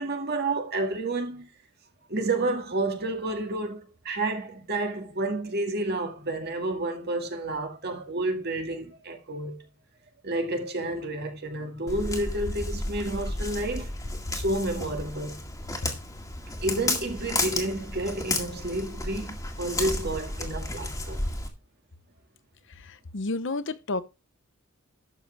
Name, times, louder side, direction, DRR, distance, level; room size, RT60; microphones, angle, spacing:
voice 1, 0.0-1.5 2.1-9.6 10.2-13.9 14.3-15.4 16.6-21.2, right 2 dB, 50° right, 2.0 m, -30 dB
Walk footsteps, 11.9-21.5, left 2 dB, 15° left, 2.0 m, -32 dB
voice 2, 22.7-24.0, left 2 dB, 60° left, 0.9 m, -31 dB
12.0 x 7.7 x 3.4 m
head